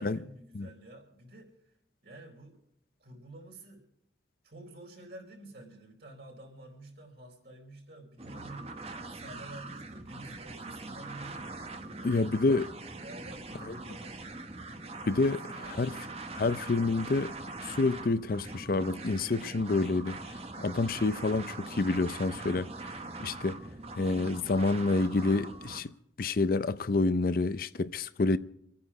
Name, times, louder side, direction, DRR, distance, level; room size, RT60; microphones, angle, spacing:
voice 1, 0.0-1.5 2.0-2.6 3.0-3.8 4.4-11.4 11.9-12.5 13.0-14.2 15.1-15.7, right 1 dB, 65° right, 4.3 m, -50 dB
sound 1, 8.2-25.8, right 2 dB, 35° right, 1.2 m, -42 dB
voice 2, 12.0-12.7 13.7-13.8 15.1-15.9 16.3-23.6 24.0-28.4, left 3 dB, 50° left, 0.5 m, -28 dB
26.5 x 9.5 x 4.9 m
head